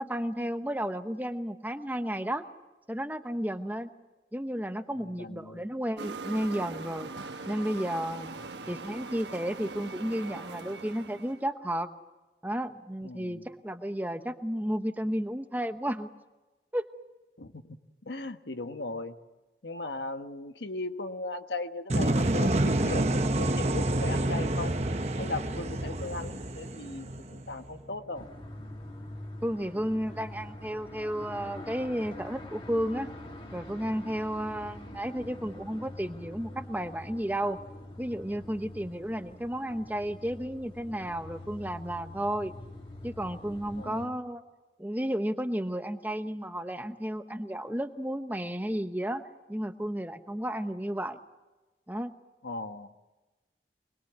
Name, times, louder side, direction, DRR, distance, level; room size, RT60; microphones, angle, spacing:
voice 1, 0.0-2.4 2.9-3.9 4.3-7.1 7.5-8.3 8.7-11.9 12.4-16.1 16.7-16.9 29.4-33.1 33.5-37.6 38.0-42.5 43.0-44.4 44.8-49.2 49.5-51.2 51.9-52.1, equal, 10° right, 8 dB, 0.9 m, -32 dB
voice 2, 4.9-5.6 8.6-8.7 13.0-13.4 17.4-17.6 18.0-19.2 19.6-24.9 25.2-28.3 43.7-44.2 52.4-53.0, left 2 dB, 90° left, 7 dB, 1.4 m, -38 dB
sound 1, 6.0-11.4, right 3 dB, 85° right, 1.3 m, -41 dB
sound 2, 21.9-27.8, right 1 dB, 40° right, 1.0 m, -28 dB
sound 3, 28.1-44.1, left 1 dB, 30° left, 2.0 m, -45 dB
24.5 x 21.0 x 8.2 m, 1.2 s
head